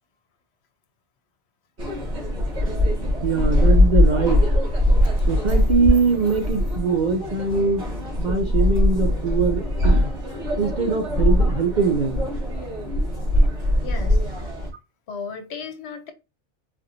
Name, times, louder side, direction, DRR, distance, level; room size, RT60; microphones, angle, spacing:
sound 1, 1.8-14.7, left 1 dB, 65° right, 1.9 m, -21 dB
voice 1, 3.2-4.6 5.3-7.8 8.2-12.3, right 5 dB, 50° right, 0.6 m, -22 dB
voice 2, 13.8-14.5 15.1-16.1, left 5 dB, 65° left, 1.0 m, -36 dB
4.1 x 2.6 x 2.8 m
omnidirectional pair, 1.2 m